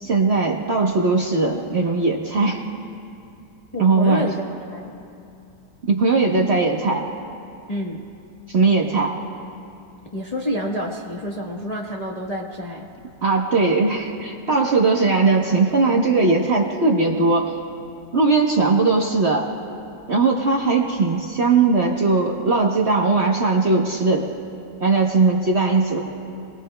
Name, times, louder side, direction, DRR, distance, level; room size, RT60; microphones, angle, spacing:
voice 1, 0.0-2.6 3.8-4.3 5.9-7.0 8.5-9.1 13.2-17.5 18.1-19.5 20.1-24.3 24.8-26.0, right 3 dB, 45° right, -1 dB, 1.1 m, -19 dB
voice 2, 3.7-4.4 4.7-4.9 7.7-8.0 10.1-12.9, equal, 25° left, -3 dB, 1.1 m, -28 dB
29.5 x 20.0 x 2.2 m, 2.6 s
omnidirectional pair, 1.9 m